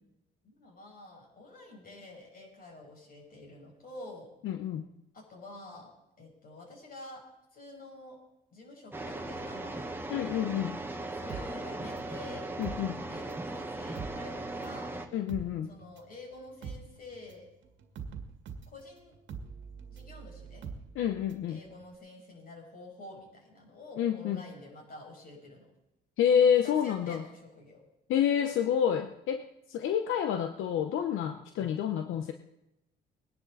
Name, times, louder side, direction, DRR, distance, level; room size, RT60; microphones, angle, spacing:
voice 1, 0.4-4.3 5.1-7.2 7.5-8.2 8.5-9.9 11.1-12.5 13.1-15.0 15.7-17.5 18.7-19.1 19.9-20.6 21.5-25.7 26.4-27.8, left 2 dB, 45° left, -1 dB, 6.3 m, -48 dB
voice 2, 4.4-4.9 10.1-10.8 12.6-13.0 15.1-15.7 20.9-21.6 24.0-24.4 26.2-27.2 28.1-32.3, left 8 dB, 85° left, 7 dB, 0.8 m, -28 dB
sound 1, 8.9-15.1, right 2 dB, 10° right, 1.4 m, -38 dB
sound 2, 11.3-13.5 13.8-21.5 21.8-21.9, right 6 dB, 70° right, 1.9 m, -44 dB
21.0 x 10.5 x 4.1 m, 0.89 s
cardioid pair, 90°, 20 cm